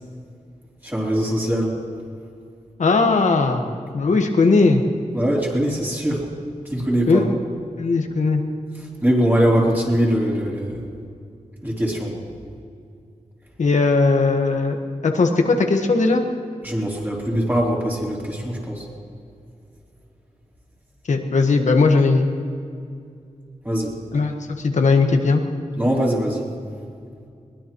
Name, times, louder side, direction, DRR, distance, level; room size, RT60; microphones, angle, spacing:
voice 1, 0.8-1.8 5.1-6.2 6.7-7.2 9.0-10.8 11.6-12.1 16.6-18.9 23.6-23.9 25.8-26.5, equal, 15° right, -4 dB, 3.5 m, -22 dB
voice 2, 2.8-3.7 3.9-4.8 7.1-7.3 7.8-8.4 13.6-14.8 15.0-16.2 21.1-22.3 24.1-25.4, left 3 dB, 70° left, 4 dB, 1.4 m, -18 dB
21.5 x 20.0 x 3.1 m, 2.4 s
wide cardioid pair, 125°, 13 cm